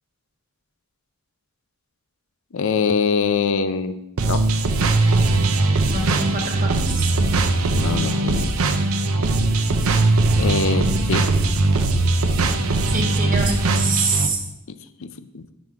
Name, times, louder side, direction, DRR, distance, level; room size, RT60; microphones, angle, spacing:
voice 1, 2.5-4.0 4.3-4.4 7.7-8.5 10.4-11.3 14.7-14.8 15.0-15.5, left 5 dB, 65° left, 12 dB, 0.5 m, -23 dB
sound 1, 4.2-14.3, right 2 dB, 70° right, 0.6 m, -20 dB
voice 2, 5.9-7.1 12.9-14.4, right 3 dB, 40° right, 1 dB, 1.5 m, -25 dB
9.1 x 6.1 x 3.6 m, 0.87 s
head